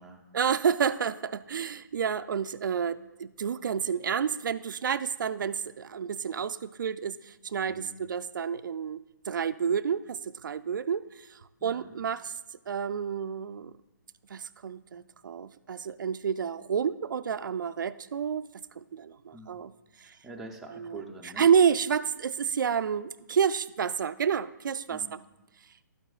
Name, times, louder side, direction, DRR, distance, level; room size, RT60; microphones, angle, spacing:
voice 1, 0.3-9.0 9.2-12.3 12.7-13.7 14.3-19.7 20.0-20.2 20.7-21.0 21.4-25.2, right 7 dB, 75° right, 13 dB, 0.4 m, -29 dB
voice 2, 7.7-8.0 11.6-11.9 19.3-19.5 20.0-21.5 24.9-25.1, right 2 dB, ahead, -2 dB, 0.4 m, -45 dB
11.5 x 9.0 x 2.4 m, 1.0 s
hypercardioid pair, 165°, 11 cm